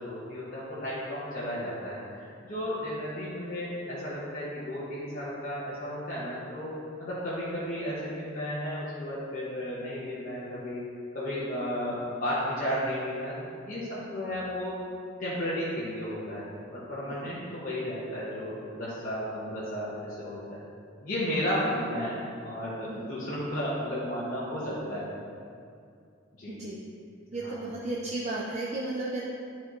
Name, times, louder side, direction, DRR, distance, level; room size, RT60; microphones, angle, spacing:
voice 1, 0.0-6.7 7.0-10.8 11.1-14.8 15.2-16.4 16.7-20.6 21.0-25.1 26.4-26.5 27.4-27.6, equal, 45° left, -10 dB, 1.2 m, -33 dB
voice 2, 26.5-26.8 27.3-29.2, right 2 dB, 35° right, -4 dB, 0.5 m, -33 dB
10.5 x 4.3 x 3.1 m, 2.4 s
head